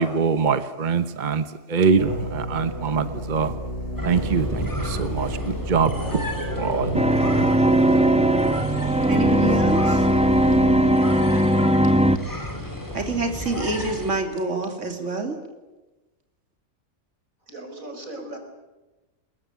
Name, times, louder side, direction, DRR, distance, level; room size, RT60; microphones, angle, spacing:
voice 1, 0.0-3.5 4.0-5.9 6.5-7.0 7.3-7.5, right 5 dB, 40° right, 11 dB, 1.2 m, -23 dB
sound 1, 2.0-10.9, equal, 55° left, 7.6 m, -31 dB
sound 2, 4.0-14.2, equal, 15° left, 4.9 m, -33 dB
sound 3, 6.9-12.2, right 1 dB, 5° right, 0.8 m, -19 dB
voice 2, 9.1-10.1 12.9-15.4, right 2 dB, 65° right, 4 dB, 3.4 m, -27 dB
voice 3, 17.4-18.4, right 2 dB, 90° right, 5 dB, 5.3 m, -37 dB
22.0 x 21.0 x 9.5 m, 1.1 s
omnidirectional pair, 1.4 m